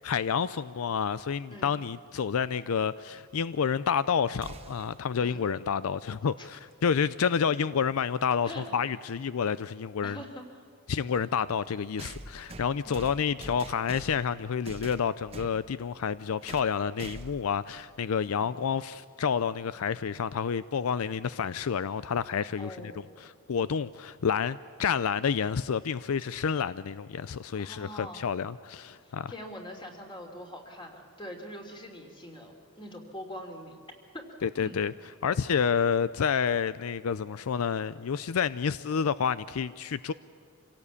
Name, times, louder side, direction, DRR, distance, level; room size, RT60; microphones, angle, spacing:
voice 1, 0.0-10.2 10.9-22.8 23.2-29.3 34.4-34.9 35.2-40.1, left 6 dB, 75° left, 0.4 m, -29 dB
voice 2, 1.5-1.8 5.2-5.4 6.4-6.5 8.4-8.6 10.0-10.4 12.9-13.0 18.3-18.6 22.6-23.2 27.6-28.3 29.0-33.8 34.1-34.3 34.6-34.8, equal, 20° left, 3.1 m, -43 dB
sound 1, 4.4-5.0 7.1-7.2 8.3-8.4 12.0-14.3 14.7-15.6 16.5-16.7 17.0-17.5, right 2 dB, 25° right, 1.2 m, -44 dB
26.0 x 17.5 x 8.4 m
head